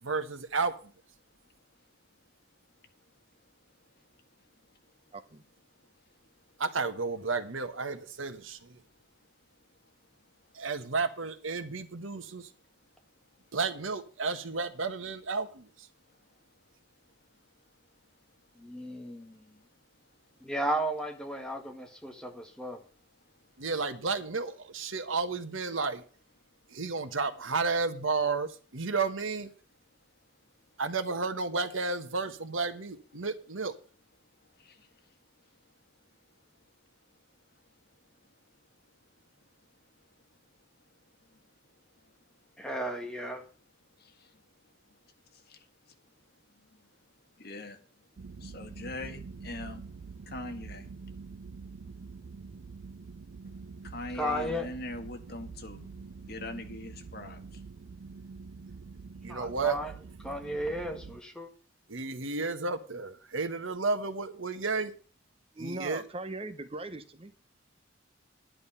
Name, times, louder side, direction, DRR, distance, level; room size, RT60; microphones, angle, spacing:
voice 1, 0.0-0.8 6.6-8.8 10.5-12.5 13.5-15.7 23.6-26.0 26.7-29.5 30.8-33.7 59.2-59.8 61.9-64.9 65.6-66.0, right 4 dB, 90° right, 1.3 m, -32 dB
voice 2, 5.1-5.4 65.5-67.3, right 2 dB, 30° right, 0.8 m, -39 dB
voice 3, 18.6-19.4 20.4-22.8 42.6-43.4 54.2-54.7 59.2-59.9 60.2-61.5, equal, 5° left, 1.6 m, -34 dB
voice 4, 34.5-34.9 41.2-41.4 42.0-42.1 44.0-44.4 44.9-45.0 45.3-45.9 46.5-46.8 47.4-47.8 48.4-49.9 50.2-50.9 53.8-55.9 56.3-57.4, left 2 dB, 50° left, 1.8 m, -42 dB
sound 1, 48.2-61.2, right 4 dB, 70° right, 0.5 m, -46 dB
11.5 x 10.5 x 5.6 m
head